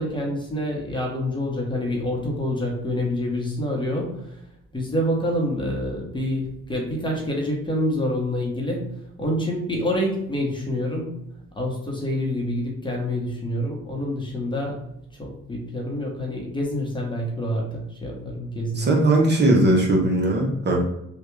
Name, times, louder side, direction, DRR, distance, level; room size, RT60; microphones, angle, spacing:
voice 1, 0.0-4.2 4.7-8.9 9.2-11.2 11.5-14.8 15.2-18.9, left 1 dB, 15° left, -2 dB, 1.0 m, -27 dB
voice 2, 18.8-20.8, right 1 dB, 35° right, -1 dB, 0.8 m, -19 dB
3.4 x 2.4 x 3.1 m, 0.81 s
cardioid pair, 90°, 30 cm